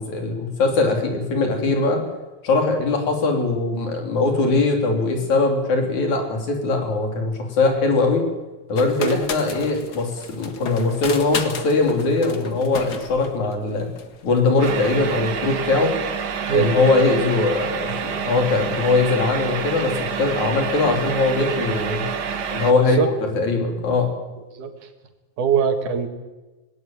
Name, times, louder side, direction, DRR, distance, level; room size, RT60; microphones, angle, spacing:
voice 1, 0.0-2.0 2.4-8.2 8.7-13.9 14.2-15.9 16.5-22.1 22.5-24.1, left 3 dB, 70° left, 3 dB, 4.8 m, -21 dB
sound 1, 8.8-15.0, left 5 dB, 40° left, 1.7 m, -34 dB
sound 2, 14.6-22.7, right 6 dB, 50° right, 1.3 m, -28 dB
voice 2, 22.7-23.1 24.6-24.8 25.4-26.1, right 7 dB, 90° right, 7 dB, 3.5 m, -22 dB
18.5 x 18.0 x 9.2 m, 1.1 s
omnidirectional pair, 3.4 m